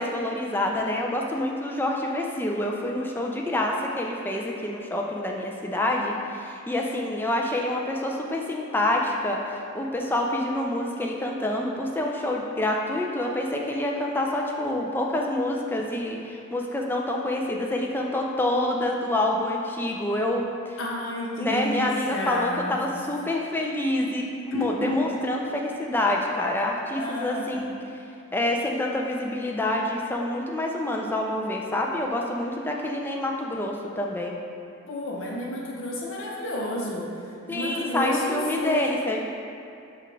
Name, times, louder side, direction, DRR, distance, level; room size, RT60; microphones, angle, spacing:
voice 1, 0.0-20.8 21.4-27.7 28.3-34.4 37.5-39.2, left 1 dB, 10° left, 0 dB, 0.3 m, -27 dB
voice 2, 20.8-22.8 24.5-25.1 26.9-27.7 34.9-37.1 37.5-39.0, left 1 dB, 65° left, -4 dB, 0.7 m, -31 dB
5.0 x 2.4 x 4.4 m, 2.6 s
head